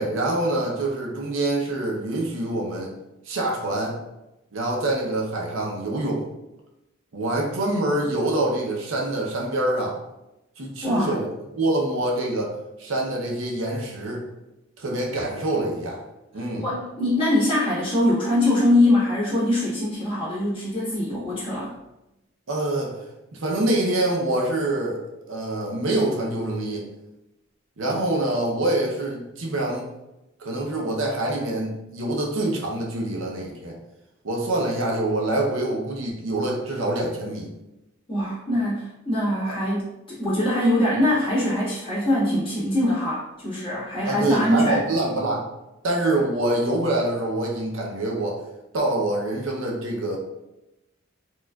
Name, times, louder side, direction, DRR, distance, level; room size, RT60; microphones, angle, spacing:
voice 1, 0.0-2.9 3.3-4.0 4.5-6.3 7.1-10.0 10.6-11.3 11.5-12.5 12.8-14.2 14.8-16.0 16.3-16.6 22.5-22.9 23.3-25.0 25.3-26.9 27.8-29.9 30.4-33.8 34.2-37.5 44.0-45.5 45.8-48.4 48.7-50.2, right 1 dB, 75° right, -1 dB, 0.7 m, -25 dB
voice 2, 10.8-11.1 16.4-21.7 38.1-44.8, left 1 dB, 25° left, -10 dB, 1.5 m, -23 dB
4.3 x 2.4 x 2.3 m, 0.94 s
head